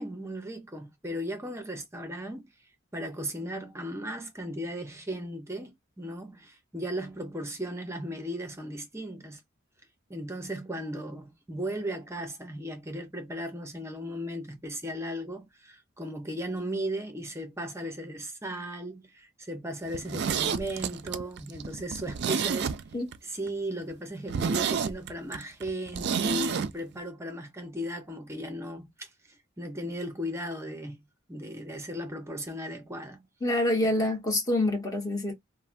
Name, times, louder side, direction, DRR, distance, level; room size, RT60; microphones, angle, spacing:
voice 1, 0.0-2.5 2.9-9.4 10.1-22.7 23.2-33.3, equal, 15° right, 0.6 m, -36 dB
Zipper (clothing), 19.9-23.2 23.5-23.6 23.9-24.0 24.3-26.7 27.0-27.1, right 6 dB, 55° right, 0.4 m, -30 dB
voice 2, 33.4-35.3, left 1 dB, 20° left, 1.1 m, -26 dB
3.2 x 2.1 x 2.5 m
head